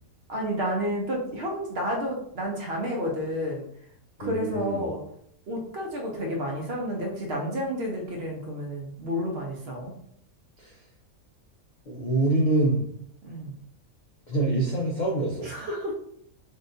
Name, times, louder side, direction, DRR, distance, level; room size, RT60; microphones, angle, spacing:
voice 1, 0.3-3.7 4.2-5.0 5.5-9.9 13.2-13.5 15.4-15.9, equal, 55° right, 0 dB, 0.8 m, -30 dB
voice 2, 4.2-4.9 10.6-10.8 11.9-12.9 14.3-15.5, right 2 dB, 75° left, -2 dB, 0.4 m, -25 dB
3.7 x 2.5 x 2.5 m, 0.68 s
omnidirectional pair, 1.5 m